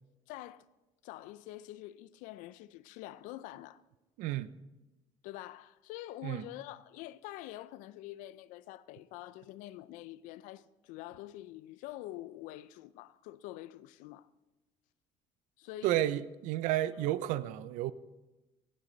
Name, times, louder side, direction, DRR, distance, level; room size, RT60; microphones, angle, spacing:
voice 1, 0.3-0.7 1.0-3.8 5.2-14.3 15.6-16.2, left 15 dB, 80° left, 0.5 m, -46 dB
voice 2, 4.2-4.5 6.2-6.4 15.8-17.9, right 14 dB, 75° right, 0.6 m, -31 dB
17.0 x 8.1 x 3.9 m
supercardioid pair, 100°, 13 cm